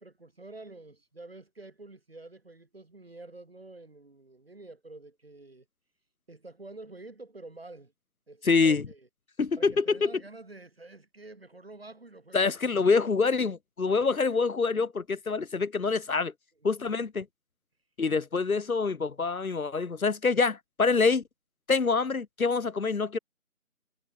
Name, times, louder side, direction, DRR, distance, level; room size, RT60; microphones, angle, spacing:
voice 1, 0.0-5.7 6.3-7.9 8.3-9.1 9.6-12.6 16.6-16.7, right 2 dB, 40° right, 5.6 m, -48 dB
voice 2, 8.5-8.8 9.4-10.1 12.3-16.3 16.6-17.3 18.0-21.2 21.7-23.2, left 4 dB, 70° left, 1.0 m, -26 dB
figure-of-eight pair, 175°, 44 cm